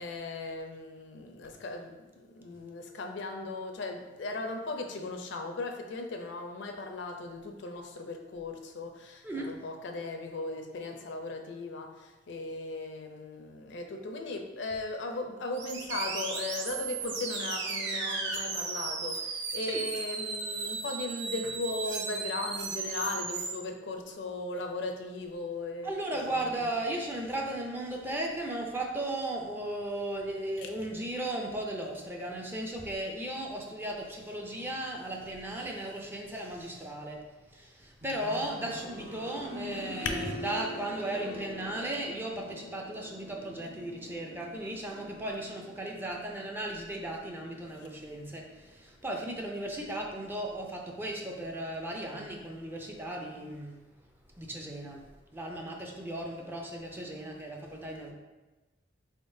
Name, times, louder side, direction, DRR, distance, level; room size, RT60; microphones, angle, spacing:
voice 1, 0.0-25.9 30.6-30.7, left 2 dB, 65° left, 4 dB, 0.5 m, -37 dB
voice 2, 9.2-9.6 19.6-19.8 25.8-53.8 54.4-55.0 55.3-58.1, right 1 dB, 10° right, 0 dB, 0.4 m, -36 dB
sound 1, 15.5-23.5, right 4 dB, 65° right, 0.6 m, -35 dB
sound 2, 38.0-48.8 50.1-50.2, left 1 dB, 40° right, 1.1 m, -45 dB
4.0 x 3.6 x 2.6 m, 1.1 s
head